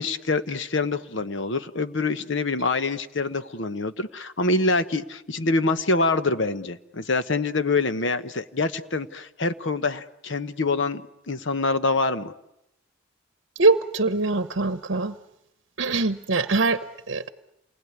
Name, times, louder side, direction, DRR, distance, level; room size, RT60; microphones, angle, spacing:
voice 1, 0.0-11.0 11.3-12.3, left 3 dB, 60° left, 11 dB, 1.1 m, -25 dB
voice 2, 13.6-15.2 15.8-17.3, right 3 dB, 60° right, 13 dB, 0.9 m, -23 dB
28.0 x 20.5 x 9.6 m, 0.84 s
head